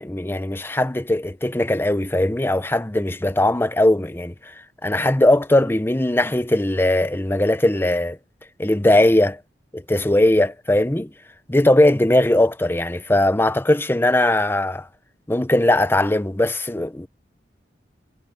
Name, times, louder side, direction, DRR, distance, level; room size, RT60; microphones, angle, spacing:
voice 1, 0.0-4.3 4.8-8.2 8.6-9.4 9.7-11.1 11.5-14.9 15.3-17.1, left 1 dB, 15° left, 0.8 m, -19 dB
head